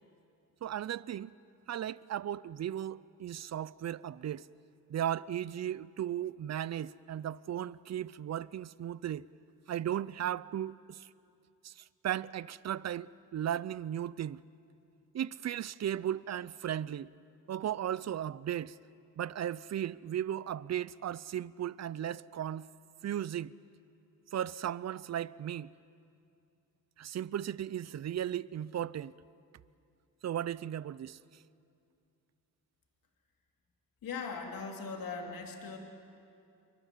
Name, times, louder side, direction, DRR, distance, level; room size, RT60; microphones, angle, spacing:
voice 1, 0.6-1.3 1.7-4.5 4.9-9.3 9.7-11.1 11.6-14.4 15.1-17.1 17.5-18.8 19.2-22.7 23.0-23.5 24.3-25.7 27.0-29.1 30.2-31.2, right 10 dB, 50° right, 0.6 m, -36 dB
voice 2, 34.0-35.8, left 5 dB, 75° left, 2.9 m, -39 dB
28.0 x 23.5 x 7.5 m
cardioid pair, 105°, 35 cm